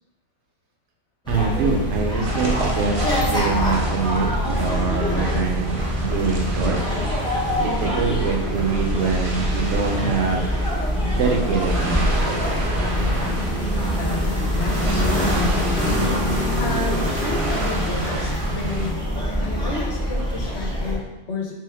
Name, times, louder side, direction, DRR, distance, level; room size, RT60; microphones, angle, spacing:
sound 1, 1.3-21.0, left 1 dB, 5° left, 0.6 m, -24 dB
voice 1, 1.3-6.8 7.6-10.5 11.1-12.1, right 5 dB, 70° right, 0 dB, 0.9 m, -24 dB
sound 2, 2.2-18.9, right 1 dB, 45° right, 0.4 m, -29 dB
voice 2, 13.6-16.0 16.6-18.9 19.4-21.5, left 3 dB, 65° left, 0 dB, 0.9 m, -31 dB
3.4 x 3.4 x 3.4 m, 0.96 s
omnidirectional pair, 1.4 m